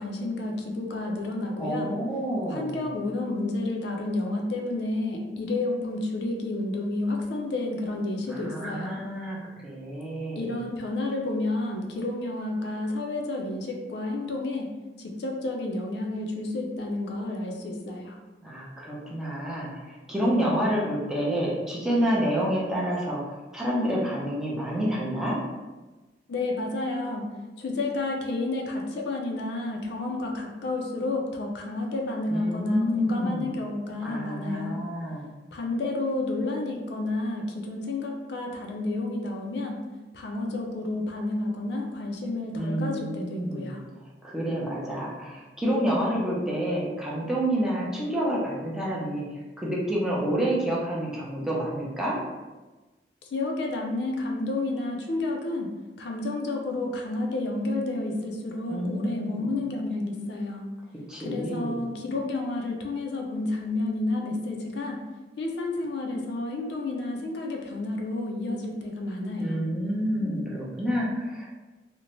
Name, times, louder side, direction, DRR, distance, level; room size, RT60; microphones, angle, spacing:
voice 1, 0.0-1.9 2.5-9.0 10.4-14.7 15.0-18.2 26.3-27.3 27.6-34.8 35.5-39.8 40.1-43.8 53.3-55.7 56.0-60.7 61.2-65.0 65.4-69.6, left 2 dB, 70° left, 1 dB, 0.4 m, -30 dB
voice 2, 1.6-2.8 8.3-9.4 9.6-10.5 18.4-23.2 23.5-25.4 32.3-33.5 34.0-35.3 42.5-43.7 44.2-49.2 49.6-52.2 58.7-59.5 61.1-61.8 69.4-71.5, equal, 5° right, -6 dB, 0.5 m, -28 dB
2.6 x 2.1 x 2.9 m, 1.2 s
head